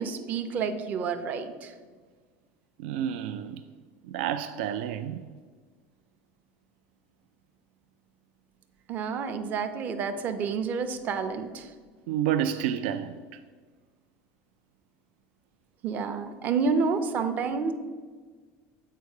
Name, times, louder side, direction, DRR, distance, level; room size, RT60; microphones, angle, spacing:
voice 1, 0.0-1.7 8.9-11.7 15.8-17.7, right 5 dB, 30° right, 0.6 m, -29 dB
voice 2, 2.8-3.6 4.0-5.2 12.1-13.2, right 10 dB, 80° right, 0.4 m, -29 dB
8.3 x 4.5 x 6.5 m
cardioid pair, 180°, 6 cm